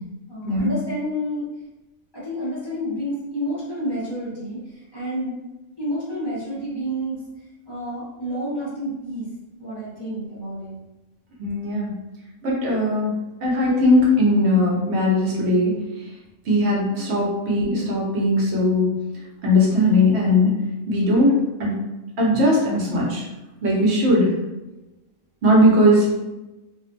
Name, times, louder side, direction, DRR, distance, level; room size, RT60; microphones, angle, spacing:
voice 1, 0.3-1.5 2.1-5.4 5.8-7.2 7.6-9.3 9.6-10.8, equal, 25° left, -10 dB, 0.6 m, -29 dB
voice 2, 11.4-11.9 12.4-13.1 13.4-15.8 16.5-18.9 19.4-20.5 20.9-21.8 22.2-23.2 23.6-24.3 25.4-26.1, left 1 dB, 55° right, -4 dB, 1.0 m, -19 dB
2.5 x 2.3 x 2.5 m, 1.0 s
omnidirectional pair, 1.4 m